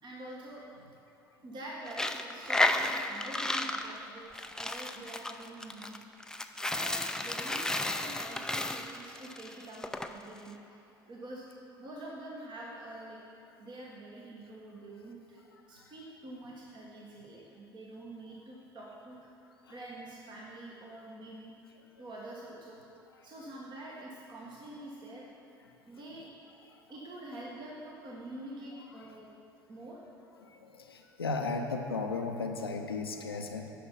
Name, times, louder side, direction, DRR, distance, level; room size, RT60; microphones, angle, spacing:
voice 1, 0.0-0.6 1.4-6.0 6.7-7.7 7.9-10.8 11.1-11.5 11.8-13.2 13.6-15.4 15.7-19.3 19.7-21.5 22.0-22.8 23.2-25.3 25.8-26.3 26.9-29.3 29.7-30.0, right 1 dB, 35° right, -4 dB, 1.4 m, -46 dB
Coin (dropping), 1.9-10.1, left 1 dB, 5° left, 0.5 m, -33 dB
voice 2, 30.6-33.7, left 3 dB, 85° left, 4 dB, 0.7 m, -35 dB
10.0 x 6.1 x 5.7 m, 2.7 s
figure-of-eight pair, 65°, 12 cm